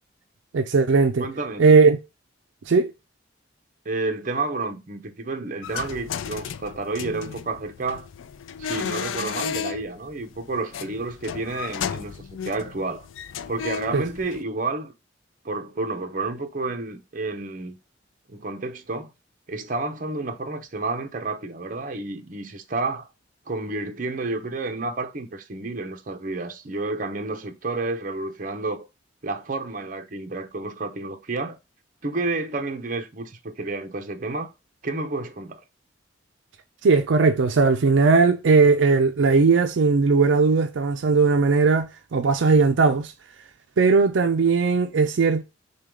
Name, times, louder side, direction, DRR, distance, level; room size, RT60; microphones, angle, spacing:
voice 1, 0.5-1.3 1.6-2.0 2.7-2.9 13.9-14.0 36.8-43.1 43.8-45.4, right 4 dB, 75° right, 0.4 m, -18 dB
voice 2, 1.2-1.7 3.8-8.1 8.6-13.1 13.5-14.9 15.4-17.8 18.3-19.1 19.5-23.1 23.5-28.9 29.2-31.6 32.0-34.5 34.8-35.6, right 3 dB, 45° right, 0.7 m, -30 dB
sound 1, 5.6-14.4, left 8 dB, 90° left, 0.4 m, -34 dB
6.3 x 2.3 x 3.6 m
head